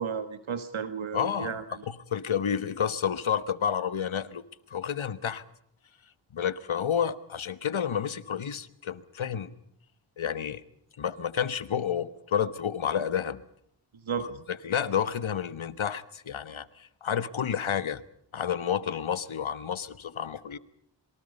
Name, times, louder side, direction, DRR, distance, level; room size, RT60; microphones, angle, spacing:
voice 1, 0.0-1.8 14.0-14.3, right 6 dB, 80° right, 1.6 m, -33 dB
voice 2, 1.1-1.5 1.9-4.4 4.7-5.4 6.3-9.5 10.2-10.6 11.0-13.4 14.2-14.3 14.6-18.0 18.3-20.6, left 8 dB, 80° left, 1.4 m, -30 dB
27.0 x 23.5 x 5.5 m
cardioid pair, 40°, 47 cm